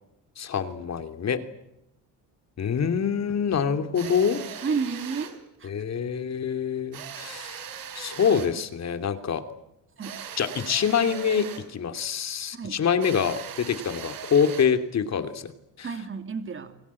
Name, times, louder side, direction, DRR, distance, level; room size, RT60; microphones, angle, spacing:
voice 1, 0.4-1.4 2.6-4.4 5.6-7.6 7.9-9.4 10.4-15.5 15.8-15.9, left 7 dB, 45° left, 8 dB, 2.9 m, -25 dB
sound 1, 3.9-5.4 6.9-8.6 10.0-11.7 13.0-14.8, right 8 dB, 65° right, 4.4 m, -39 dB
voice 2, 4.6-5.3 5.6-5.7 10.0-10.2 12.5-12.8 15.8-16.7, right 5 dB, 35° right, 8 dB, 2.7 m, -31 dB
29.5 x 22.0 x 8.5 m, 0.85 s
cardioid pair, 125°, 37 cm